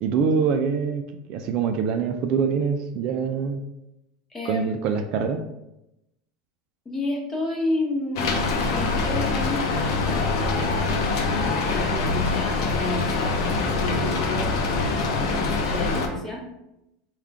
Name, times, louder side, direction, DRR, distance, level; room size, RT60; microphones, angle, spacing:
voice 1, 0.0-3.6 4.4-5.5, right 6 dB, 50° right, 5 dB, 0.3 m, -24 dB
voice 2, 4.3-4.7 6.8-16.4, left 2 dB, 15° left, -2 dB, 1.0 m, -31 dB
Rain, 8.2-16.1, left 3 dB, 75° left, 0.6 m, -24 dB
3.6 x 2.3 x 3.5 m, 0.88 s
supercardioid pair, 120°, 2 cm